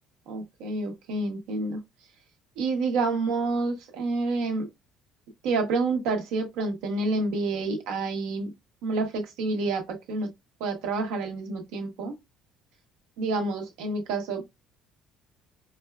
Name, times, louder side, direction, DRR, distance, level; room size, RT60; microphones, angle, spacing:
voice 1, 0.3-1.8 2.6-4.7 5.4-8.5 8.8-10.3 10.6-12.2 13.2-14.6, right 3 dB, 85° right, 0.9 m, -28 dB
4.1 x 2.2 x 2.2 m
cardioid pair, 125°, 0 cm